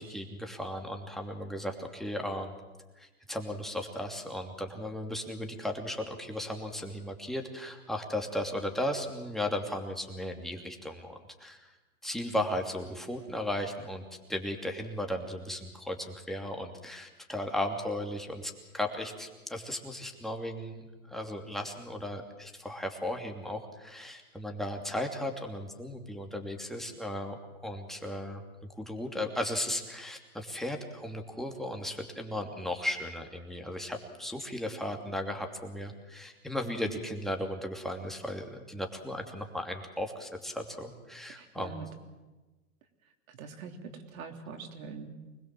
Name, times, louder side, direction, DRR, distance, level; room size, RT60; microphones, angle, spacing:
voice 1, 0.0-2.5 3.0-11.7 12.0-14.0 14.3-28.4 28.8-41.7, left 1 dB, ahead, 3 dB, 2.8 m, -36 dB
voice 2, 41.3-41.9 43.3-45.1, right 5 dB, 70° right, 4 dB, 3.5 m, -43 dB
25.0 x 20.5 x 7.6 m, 1.2 s
hypercardioid pair, 120°, 43 cm